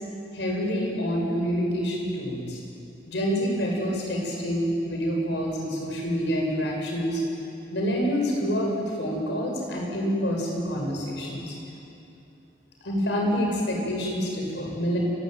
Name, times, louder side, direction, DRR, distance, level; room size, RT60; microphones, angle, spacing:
voice 1, 0.3-2.6 3.1-7.2 7.7-11.6 12.8-15.0, equal, 90° left, -1 dB, 7.1 m, -27 dB
29.5 x 16.5 x 9.4 m, 2.7 s
head